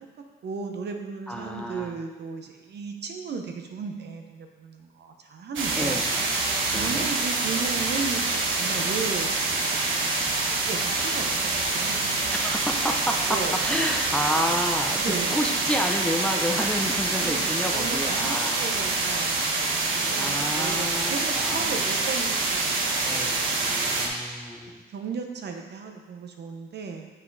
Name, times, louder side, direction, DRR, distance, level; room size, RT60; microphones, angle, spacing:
voice 1, 0.4-6.0 6.7-10.0 10.6-12.1 13.3-13.6 14.3-14.4 15.0-15.3 17.2-22.7 23.0-23.4 24.9-27.1, right 5 dB, 55° right, 4 dB, 1.0 m, -35 dB
voice 2, 1.3-1.9 5.8-6.0 6.7-7.1 12.3-13.4 13.6-18.6 20.1-21.8 23.1-24.8, equal, 5° left, 3 dB, 0.6 m, -30 dB
sound 1, 5.6-24.1, right 3 dB, 80° right, 1.1 m, -26 dB
7.4 x 5.6 x 4.0 m, 1.3 s
cardioid pair, 90°, 20 cm